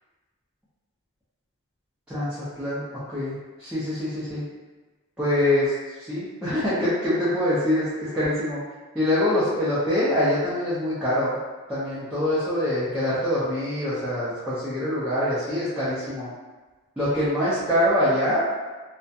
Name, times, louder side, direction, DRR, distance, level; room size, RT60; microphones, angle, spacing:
voice 1, 2.1-3.3 3.6-4.4 5.2-5.7 6.0-8.6 8.9-11.4 11.7-16.3 17.0-18.5, left 1 dB, 5° right, -13 dB, 0.5 m, -24 dB
2.4 x 2.2 x 2.7 m, 1.3 s
head